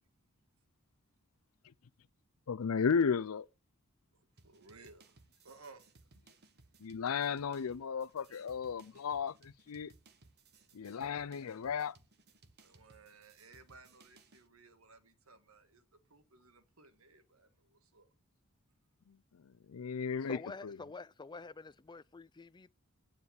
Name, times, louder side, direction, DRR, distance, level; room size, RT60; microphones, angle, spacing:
voice 1, 2.5-3.5 6.8-9.9 10.7-11.9 19.1-19.4 19.7-20.8, left 6 dB, 80° left, 0.5 m, -34 dB
sound 1, 4.4-14.5, right 3 dB, 50° right, 1.2 m, -64 dB
voice 2, 4.4-5.2 5.4-5.8 8.3-8.4 12.6-15.8 16.1-18.1, right 3 dB, 75° right, 1.7 m, -59 dB
voice 3, 20.3-22.7, left 3 dB, 20° left, 0.4 m, -48 dB
9.5 x 5.2 x 8.0 m
head